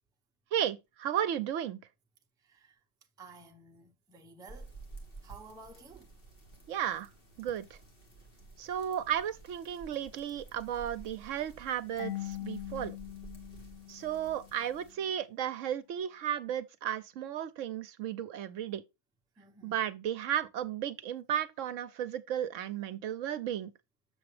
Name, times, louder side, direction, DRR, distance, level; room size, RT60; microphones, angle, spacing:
voice 1, 0.5-1.8 6.7-7.1 7.4-7.7 8.6-13.0 13.9-18.8 19.6-23.7, right 10 dB, 70° right, 0.9 m, -34 dB
voice 2, 2.4-2.8 3.2-4.7 5.2-6.1 19.4-19.8, right 3 dB, 5° right, 0.4 m, -53 dB
sound 1, 4.5-14.9, right 3 dB, 40° left, 1.9 m, -52 dB
Marimba xylophone / Wood, 12.0-14.7, left 15 dB, 75° left, 1.3 m, -42 dB
6.8 x 6.8 x 3.1 m
omnidirectional pair, 1.4 m